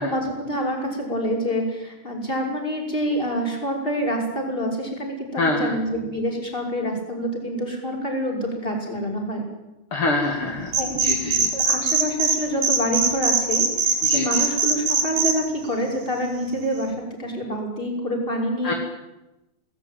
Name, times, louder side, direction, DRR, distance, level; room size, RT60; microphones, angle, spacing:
voice 1, 0.0-9.5 10.7-18.8, equal, 15° left, 1 dB, 6.3 m, -27 dB
voice 2, 5.4-5.7 9.9-10.7 11.0-11.5 14.0-14.3 18.6-18.7, left 2 dB, 45° left, 3 dB, 3.3 m, -25 dB
sound 1, 10.7-12.4 12.6-15.3, right 5 dB, 85° right, 5.1 m, -20 dB
28.0 x 19.5 x 9.2 m, 0.98 s
omnidirectional pair, 3.6 m